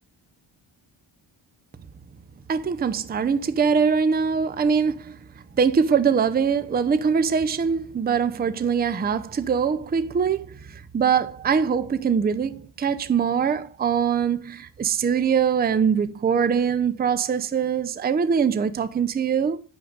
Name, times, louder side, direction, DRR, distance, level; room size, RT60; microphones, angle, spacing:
voice 1, 2.5-5.2 5.6-19.6, right 6 dB, 20° right, 0.5 m, -23 dB
6.0 x 4.9 x 5.2 m
cardioid pair, 60°, 46 cm